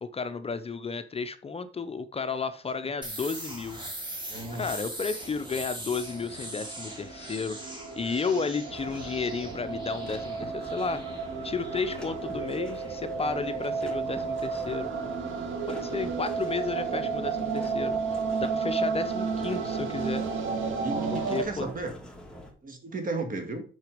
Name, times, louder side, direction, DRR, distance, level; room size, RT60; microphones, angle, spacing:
voice 1, 0.0-3.8 4.5-11.0 11.4-14.9 15.7-20.2 21.1-21.7, left 4 dB, 30° left, 10 dB, 0.7 m, -33 dB
sound 1, 3.0-14.6, right 1 dB, 25° right, 2.8 m, -42 dB
voice 2, 4.3-4.7 20.8-21.9 22.6-23.6, right 2 dB, 45° right, 5 dB, 2.1 m, -34 dB
sound 2, 5.9-21.4, right 5 dB, 80° right, 1.6 m, -32 dB
sound 3, 8.7-22.5, left 1 dB, 5° left, 2.1 m, -45 dB
6.2 x 6.0 x 5.0 m, 0.40 s
cardioid pair, 90°, 20 cm